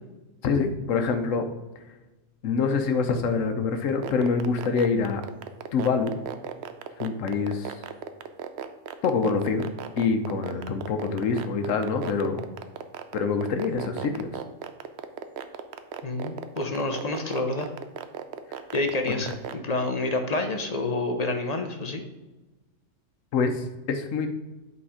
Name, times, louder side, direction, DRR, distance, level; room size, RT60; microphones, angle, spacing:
voice 1, 0.4-1.5 2.4-5.2 5.7-6.1 7.0-7.8 9.0-9.7 10.0-12.4 13.1-14.4 19.1-19.3 23.3-24.3, left 5 dB, 85° left, 7 dB, 1.1 m, -25 dB
sound 1, 3.9-19.5, right 9 dB, 65° right, 0.8 m, -35 dB
voice 2, 16.0-17.7 18.7-22.0, left 2 dB, 35° left, 5 dB, 0.8 m, -28 dB
8.6 x 4.2 x 4.9 m, 1.1 s
omnidirectional pair, 1.3 m